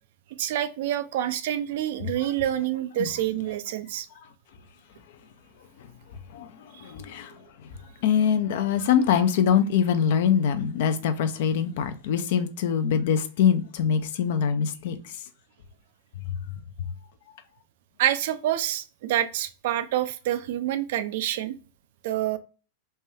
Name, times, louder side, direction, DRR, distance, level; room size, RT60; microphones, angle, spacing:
voice 1, 0.4-4.1 18.0-21.6 22.0-22.4, right 12 dB, 65° right, 0.4 m, -27 dB
voice 2, 6.3-7.3 8.0-15.1 16.3-16.4, left 8 dB, 65° left, 0.5 m, -24 dB
3.3 x 2.2 x 2.7 m
hypercardioid pair, 110°, 0 cm